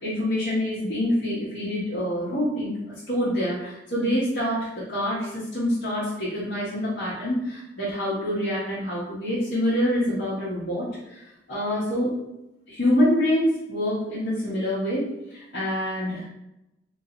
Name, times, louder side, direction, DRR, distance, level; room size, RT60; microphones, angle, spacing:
voice 1, 0.0-12.1 12.7-16.3, left 1 dB, 85° left, -10 dB, 1.2 m, -26 dB
3.2 x 2.8 x 3.9 m, 0.90 s
head